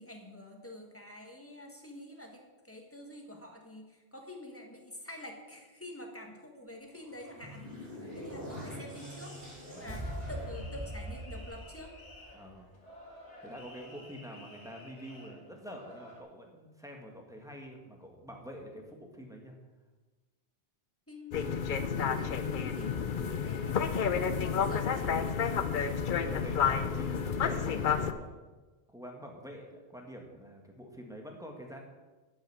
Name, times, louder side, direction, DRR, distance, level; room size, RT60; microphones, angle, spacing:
voice 1, 0.0-7.7 8.1-9.3 9.7-11.9 21.1-21.5 21.9-23.8 24.4-25.3, left 1 dB, 10° left, 1 dB, 1.5 m, -47 dB
sound 1, 7.0-12.4, equal, 55° right, 3.7 m, -42 dB
voice 2, 7.9-8.5 9.7-10.0 12.3-12.7 13.4-19.5 26.0-28.3 28.9-31.8, equal, 5° right, 1 dB, 1.7 m, -46 dB
sound 2, 9.2-16.2, left 1 dB, 90° left, 2.2 m, -52 dB
sound 3, 21.3-28.1, left 6 dB, 55° left, 0.8 m, -30 dB
12.0 x 8.7 x 4.9 m, 1.2 s
omnidirectional pair, 1.1 m